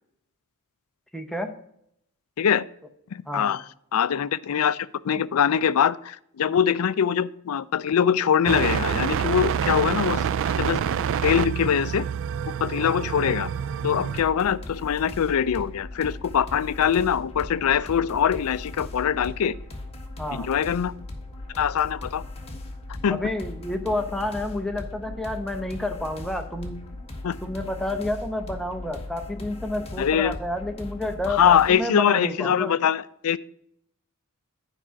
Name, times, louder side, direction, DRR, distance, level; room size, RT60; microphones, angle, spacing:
voice 1, 1.1-1.5 3.3-3.6 12.8-13.0 20.2-20.5 23.1-26.9 27.4-32.7, left 1 dB, ahead, 4 dB, 0.8 m, -30 dB
voice 2, 3.1-3.6 3.9-10.2 10.6-10.8 11.2-12.1 12.6-13.5 13.8-19.6 20.3-20.9 21.6-22.2 23.0-23.2 27.2-27.4 30.0-30.4 31.3-33.4, left 8 dB, 70° left, 17 dB, 0.4 m, -23 dB
sound 1, 8.5-14.2, right 8 dB, 60° right, 0.3 m, -27 dB
sound 2, 14.1-31.7, left 2 dB, 30° left, 1.5 m, -38 dB
9.8 x 5.0 x 5.7 m, 0.72 s
head